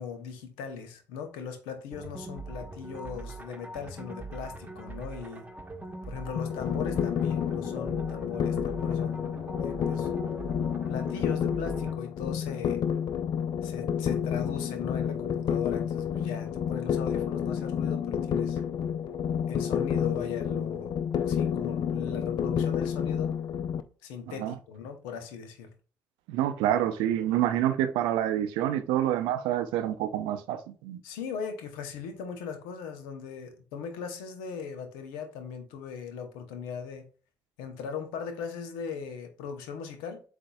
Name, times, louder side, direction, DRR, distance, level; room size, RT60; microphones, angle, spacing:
voice 1, 0.0-5.5 6.1-9.3 9.6-10.1 10.9-12.8 13.6-18.6 19.5-20.9 21.2-23.3 24.0-25.7 31.0-37.1 37.6-40.2, left 6 dB, 85° left, 0.7 m, -39 dB
sound 1, 1.9-12.0, right 2 dB, 20° right, 1.0 m, -42 dB
sound 2, 6.4-23.8, left 8 dB, 60° left, 0.5 m, -30 dB
voice 2, 26.3-31.0, right 11 dB, 80° right, 0.5 m, -27 dB
7.7 x 2.6 x 2.3 m
hypercardioid pair, 50°, 8 cm